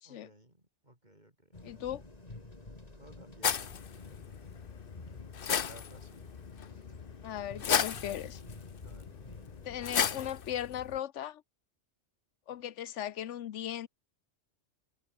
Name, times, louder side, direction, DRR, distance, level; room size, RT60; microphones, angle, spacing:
voice 1, 0.0-1.8 2.9-3.8 5.5-6.2 8.8-9.2, right 1 dB, 40° right, 6.2 m, -57 dB
sound 1, 1.5-10.3, left 2 dB, 35° left, 2.7 m, -51 dB
voice 2, 1.6-2.0 7.2-8.4 9.6-11.4 12.5-13.9, left 11 dB, 85° left, 1.1 m, -38 dB
sound 2, 3.4-11.0, left 7 dB, 55° left, 1.0 m, -35 dB
omnidirectional pair, 1.2 m